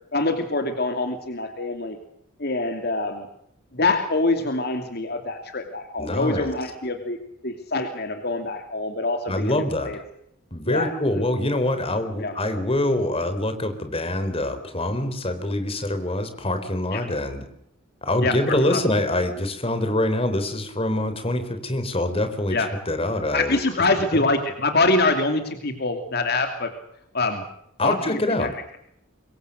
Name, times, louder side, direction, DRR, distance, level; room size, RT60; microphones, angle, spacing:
voice 1, 0.1-2.0 2.4-3.3 3.7-7.2 7.4-10.0 10.7-11.2 12.2-12.3 16.9-17.1 18.2-18.4 18.7-18.8 22.5-22.7 23.3-26.7 27.1-27.4 27.8-28.5, left 2 dB, 50° left, 6 dB, 2.7 m, -25 dB
voice 2, 6.0-6.5 9.3-9.9 10.5-17.5 18.0-22.6 22.9-23.6 24.1-24.2 27.8-28.5, left 1 dB, 30° left, 8 dB, 3.9 m, -25 dB
25.5 x 23.0 x 6.6 m, 0.74 s
head